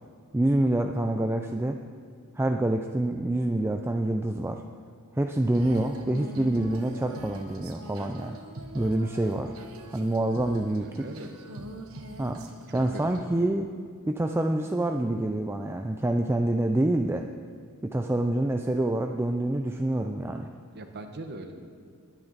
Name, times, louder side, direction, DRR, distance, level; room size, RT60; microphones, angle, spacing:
voice 1, 0.3-1.8 2.4-4.6 5.1-8.4 8.7-9.5 9.9-11.1 12.2-12.4 12.7-13.7 14.1-17.3 17.8-20.5, right 1 dB, 10° right, 4 dB, 0.4 m, -26 dB
Female singing, 5.5-13.3, right 1 dB, 70° right, 1.2 m, -42 dB
voice 2, 10.8-11.3 12.7-13.0 20.7-21.5, right 2 dB, 50° right, 6 dB, 1.1 m, -40 dB
20.5 x 9.1 x 4.1 m, 2.2 s
head